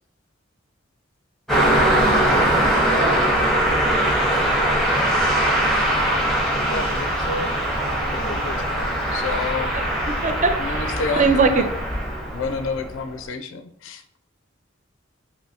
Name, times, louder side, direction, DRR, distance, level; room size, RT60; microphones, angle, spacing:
Car passing by, 1.5-12.9, right 1 dB, ahead, 0.6 m, -21 dB
voice 1, 2.7-3.1 9.7-9.8 10.2-10.9 11.2-11.7, right 4 dB, 40° right, 8 dB, 0.3 m, -21 dB
voice 2, 6.5-7.5 8.1-9.7 10.6-11.7 12.3-14.0, left 4 dB, 70° left, 7 dB, 0.4 m, -30 dB
3.4 x 2.6 x 2.7 m, 0.72 s
head